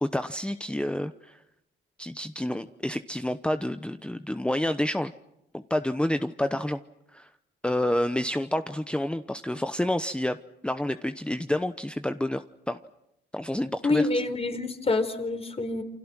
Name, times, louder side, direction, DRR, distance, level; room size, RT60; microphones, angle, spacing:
voice 1, 0.0-1.4 2.0-5.1 5.5-6.8 7.1-7.3 7.6-10.4 10.6-12.8 13.3-14.1, left 1 dB, 5° left, 10 dB, 0.9 m, -29 dB
voice 2, 13.8-15.8, left 3 dB, 30° left, 8 dB, 4.2 m, -26 dB
28.5 x 26.0 x 6.2 m, 0.85 s
cardioid pair, 90°, 20 cm